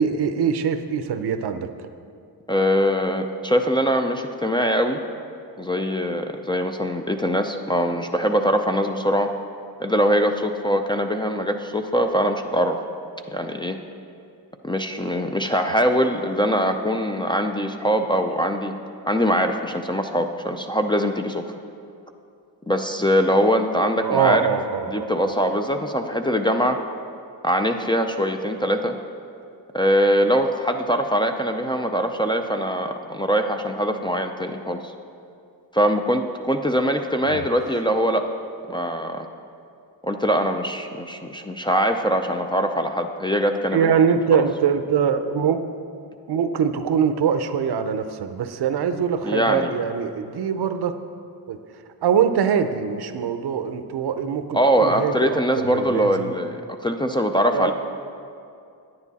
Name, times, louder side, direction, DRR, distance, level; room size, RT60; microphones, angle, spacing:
voice 1, 0.0-1.7 24.0-25.1 37.3-37.5 43.7-45.6 46.3-50.9 51.5-51.6 52.0-56.3 57.5-57.7, right 7 dB, 65° right, 9 dB, 0.7 m, -23 dB
voice 2, 2.5-5.0 5.6-9.3 9.8-12.8 13.3-13.8 14.6-18.7 19.1-21.4 22.7-24.4 24.9-26.8 27.4-28.9 29.7-34.9 35.7-38.2 38.7-39.3 40.0-44.0 44.3-44.4 49.2-49.7 54.5-57.7, equal, 10° left, 3 dB, 0.4 m, -22 dB
9.8 x 9.6 x 4.1 m, 2.5 s
cardioid pair, 95°, 41 cm